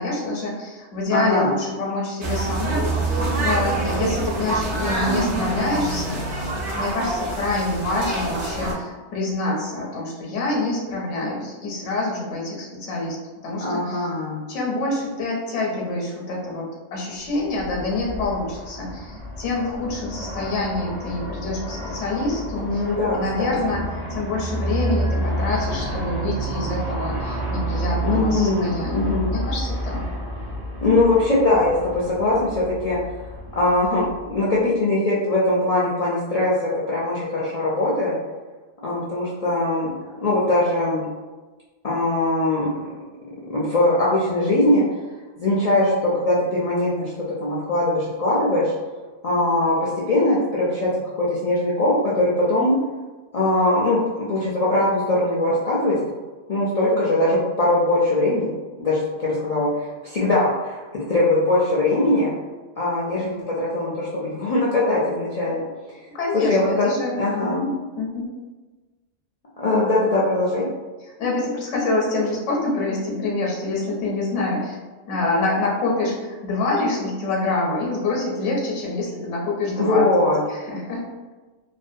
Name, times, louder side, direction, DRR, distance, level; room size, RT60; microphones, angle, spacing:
voice 1, 0.0-13.2 13.4-14.1 14.5-22.8 23.1-30.0 66.1-67.7 68.0-68.3 71.2-74.8 75.1-80.0 80.5-81.0, left 2 dB, 90° left, -2 dB, 1.0 m, -26 dB
voice 2, 1.1-1.5 13.6-14.4 22.6-23.8 28.0-29.3 30.8-38.2 38.8-39.9 40.2-41.1 41.8-43.0 43.5-44.8 45.4-47.1 47.4-48.7 49.2-50.9 51.2-52.8 53.3-55.9 56.5-58.5 58.8-62.3 62.8-65.6 66.3-67.7 69.6-70.7 79.8-80.4, left 2 dB, 70° left, -7 dB, 0.3 m, -21 dB
sound 1, 2.2-8.7, right 2 dB, 70° right, 0.9 m, -25 dB
Aircraft, 17.3-34.6, right 1 dB, 45° right, 0.6 m, -30 dB
2.5 x 2.1 x 2.5 m, 1.3 s
omnidirectional pair, 1.2 m